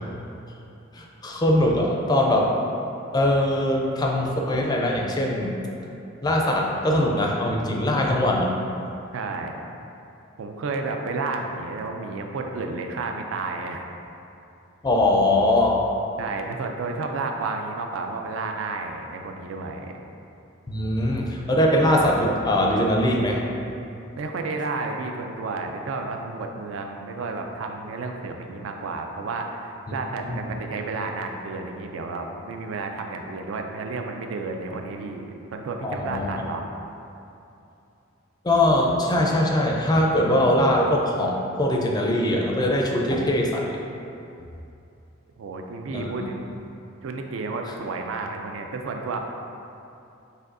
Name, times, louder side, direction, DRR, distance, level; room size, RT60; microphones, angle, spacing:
voice 1, 1.0-2.5 3.1-5.5 6.2-8.5 14.8-15.8 20.7-23.4 30.2-30.4 35.8-36.3 38.4-43.8 45.9-46.1, left 1 dB, 20° left, -1 dB, 0.4 m, -21 dB
voice 2, 9.1-9.6 10.4-13.8 16.2-19.9 24.2-35.3 35.5-36.6 45.4-46.5 47.0-49.2, right 3 dB, 70° right, 3 dB, 0.4 m, -31 dB
6.3 x 2.6 x 2.5 m, 2.7 s
head